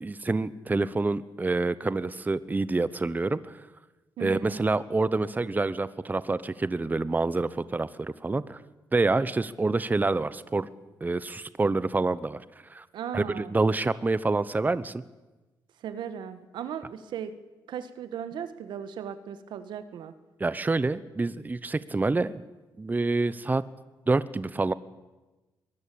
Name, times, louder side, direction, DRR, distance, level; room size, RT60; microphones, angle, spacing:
voice 1, 0.0-3.6 4.2-8.6 8.9-10.7 11.0-12.4 12.7-12.8 13.1-15.0 20.4-22.4 22.8-23.6 24.1-24.7, right 3 dB, 25° right, 16 dB, 1.0 m, -27 dB
voice 2, 4.2-4.6 12.9-13.5 15.8-17.3 17.7-20.1, right 8 dB, 85° right, 11 dB, 1.7 m, -37 dB
23.0 x 19.5 x 8.7 m, 1.1 s
cardioid pair, 80°, 8 cm